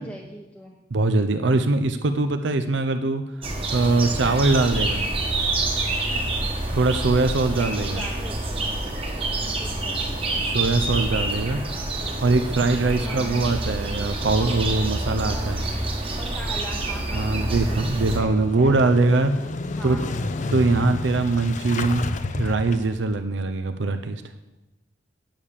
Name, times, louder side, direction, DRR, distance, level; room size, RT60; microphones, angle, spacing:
voice 1, 0.0-0.8 1.4-1.7 7.6-8.4 9.3-10.1 13.0-14.0 15.3-15.7 16.1-17.9 18.2-19.1 19.7-20.2, equal, 5° left, -3 dB, 0.8 m, -41 dB
voice 2, 0.9-3.2 3.7-5.0 6.7-8.0 10.4-11.6 12.2-15.6 17.1-19.3 19.8-20.0 20.5-24.2, right 3 dB, 65° right, 8 dB, 0.6 m, -22 dB
sound 1, 3.4-18.2, right 2 dB, 30° right, 1.3 m, -27 dB
Motorcycle / Engine starting, 17.4-23.2, left 2 dB, 40° left, 0.5 m, -31 dB
8.9 x 7.3 x 6.6 m, 1.0 s
head